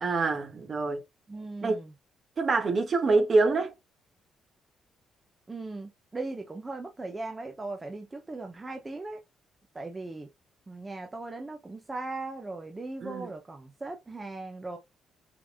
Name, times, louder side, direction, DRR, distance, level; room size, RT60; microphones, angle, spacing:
voice 1, 0.0-1.0 1.6-1.8 2.4-3.7 13.0-13.3, right 3 dB, 45° right, 1.6 m, -25 dB
voice 2, 1.3-1.9 5.5-9.2 9.7-10.3 10.7-14.8, right 2 dB, 20° right, 1.0 m, -38 dB
6.0 x 3.5 x 2.2 m
cardioid pair, 90°, 0 cm